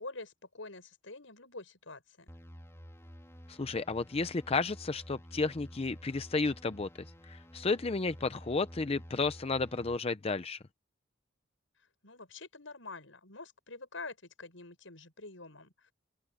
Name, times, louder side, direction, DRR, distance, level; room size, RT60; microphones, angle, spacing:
voice 1, 0.0-2.3 12.0-15.9, left 3 dB, 85° left, 6.8 m, -46 dB
sound 1, 2.3-10.0, equal, 15° left, 3.4 m, -51 dB
voice 2, 3.5-6.9 7.2-10.6, left 3 dB, 30° left, 0.6 m, -32 dB
open air
head